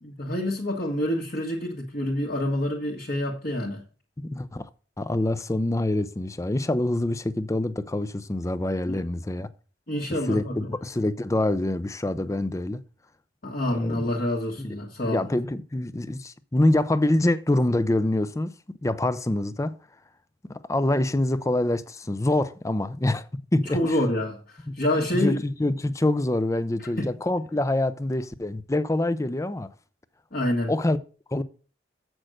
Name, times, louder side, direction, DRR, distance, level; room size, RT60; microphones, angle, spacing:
voice 1, 0.0-3.8 8.9-9.0 9.9-10.7 13.4-15.2 23.6-25.4 27.0-27.1 30.3-30.7, left 1 dB, 50° left, 1.5 m, -27 dB
voice 2, 4.2-4.7 5.0-9.5 10.3-12.8 13.8-14.0 14.6-14.8 15.0-18.5 18.8-19.8 20.5-23.3 23.5-24.0 24.7-29.7 30.7-31.0 31.3-31.4, left 1 dB, 15° left, 0.5 m, -25 dB
7.7 x 6.2 x 6.4 m
head